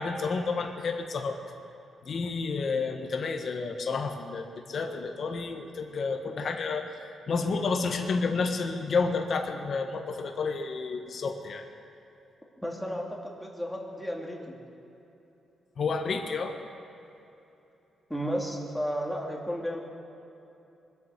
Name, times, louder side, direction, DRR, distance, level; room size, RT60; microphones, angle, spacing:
voice 1, 0.0-1.4 2.0-11.6 15.8-16.5, left 4 dB, 50° left, 4 dB, 1.3 m, -30 dB
voice 2, 12.6-14.6 18.1-19.8, equal, ahead, -2 dB, 2.6 m, -33 dB
23.5 x 8.5 x 6.7 m, 3.0 s
cardioid pair, 120°, 0 cm